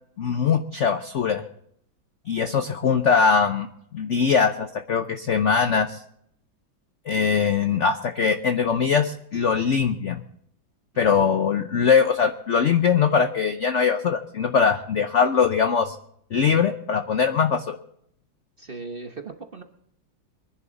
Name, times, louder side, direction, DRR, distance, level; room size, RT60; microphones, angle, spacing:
voice 1, 0.2-1.4 2.3-3.7 3.9-6.0 7.1-10.2 11.0-16.0 16.3-17.8, left 6 dB, 60° left, 8 dB, 0.7 m, -21 dB
voice 2, 10.9-11.4 18.6-19.6, right 3 dB, 35° right, 5 dB, 1.1 m, -38 dB
24.0 x 11.0 x 4.0 m, 0.70 s
omnidirectional pair, 2.1 m